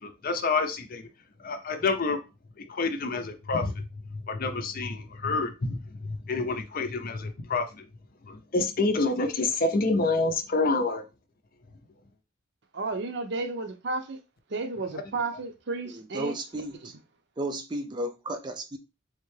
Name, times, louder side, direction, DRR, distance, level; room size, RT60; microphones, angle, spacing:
voice 1, 0.0-1.1 1.4-2.2 2.6-7.9 8.2-11.0, left 3 dB, 45° left, 0.5 m, -28 dB
voice 2, 12.7-14.2 14.5-16.4 16.8-16.9, right 3 dB, 60° right, 0.6 m, -32 dB
voice 3, 15.9-16.9 17.4-18.8, right 1 dB, 20° right, 0.4 m, -34 dB
3.6 x 3.1 x 3.2 m
head